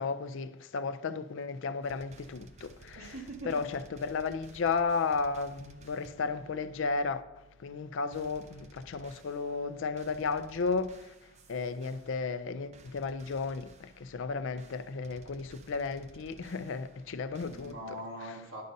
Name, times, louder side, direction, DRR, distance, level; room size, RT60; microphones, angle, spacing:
voice 1, 0.0-3.1 3.5-7.2 7.6-11.1 11.5-17.7, left 4 dB, 60° left, 0.4 m, -34 dB
sound 1, 1.8-17.7, right 3 dB, 30° right, 0.4 m, -57 dB
voice 2, 2.9-3.7 17.4-18.6, right 1 dB, 85° right, 1.4 m, -42 dB
10.5 x 6.4 x 2.7 m
head